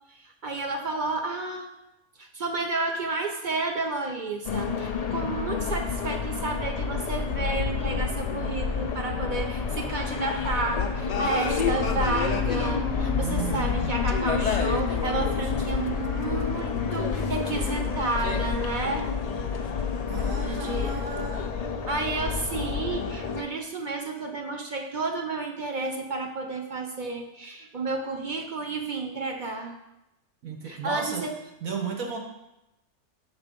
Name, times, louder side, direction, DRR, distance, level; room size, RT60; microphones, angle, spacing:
voice 1, 0.2-1.7 2.2-19.1 20.4-20.9 21.9-29.8 30.6-31.3, right 3 dB, 55° right, 3 dB, 0.5 m, -31 dB
sound 1, 4.4-23.4, left 5 dB, 80° left, 0.3 m, -28 dB
voice 2, 13.2-13.9 20.1-21.5 30.4-31.3 31.6-32.2, right 5 dB, 90° right, 1 dB, 1.4 m, -34 dB
6.0 x 4.3 x 5.1 m, 0.91 s
omnidirectional pair, 1.4 m